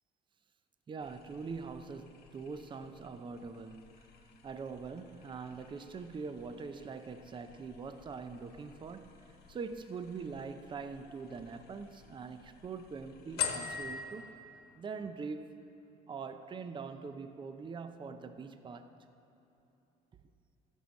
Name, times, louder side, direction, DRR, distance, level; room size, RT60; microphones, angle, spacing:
voice 1, 0.9-4.1 4.4-9.1 9.5-14.3 14.8-15.6 16.1-18.9, right 5 dB, 30° right, 0.5 m, -43 dB
sound 1, 1.0-14.0, left 7 dB, 70° left, 1.1 m, -46 dB
15.5 x 5.5 x 6.4 m
cardioid pair, 110°, 17 cm